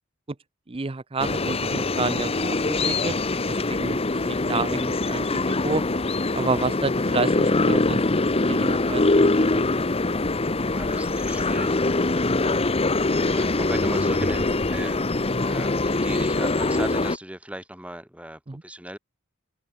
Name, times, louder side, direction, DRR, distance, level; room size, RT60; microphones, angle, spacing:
voice 1, 0.7-3.2 3.5-5.8 6.3-8.0 8.5-9.7 18.5-18.6, right 3 dB, 25° right, 0.6 m, -30 dB
sound 1, 1.2-17.2, left 2 dB, 30° left, 1.0 m, -23 dB
voice 2, 10.6-12.0 12.4-12.9 13.2-19.0, right 1 dB, 5° right, 4.2 m, -37 dB
head